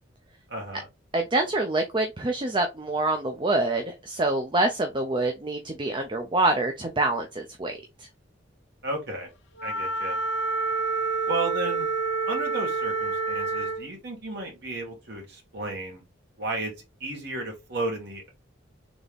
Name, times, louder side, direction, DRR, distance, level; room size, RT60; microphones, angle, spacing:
voice 1, 0.5-0.8 8.8-9.3 9.6-10.2 11.3-11.9 12.3-16.0 16.4-16.7 17.0-18.3, right 2 dB, 55° right, 2.0 m, -33 dB
voice 2, 1.1-8.1, right 2 dB, 25° right, 0.5 m, -26 dB
Wind instrument woodwind instrument, 9.6-13.9, right 4 dB, 70° left, 0.9 m, -28 dB
4.0 x 3.5 x 3.4 m
head